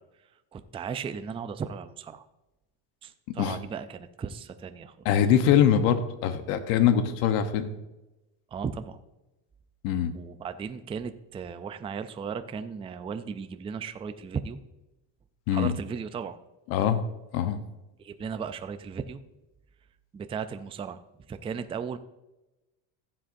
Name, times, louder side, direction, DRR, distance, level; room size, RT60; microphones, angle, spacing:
voice 1, 0.5-2.3 3.0-4.9 8.5-9.0 10.1-14.6 15.5-16.4 18.0-19.2 20.1-21.0 21.3-22.0, right 6 dB, 15° right, 9 dB, 0.3 m, -36 dB
voice 2, 5.0-7.7 9.8-10.1 15.5-15.8 16.7-17.0 17.3-17.6, left 9 dB, 85° left, 9 dB, 1.0 m, -23 dB
15.5 x 7.7 x 2.6 m, 1.0 s
cardioid pair, 115°, 48 cm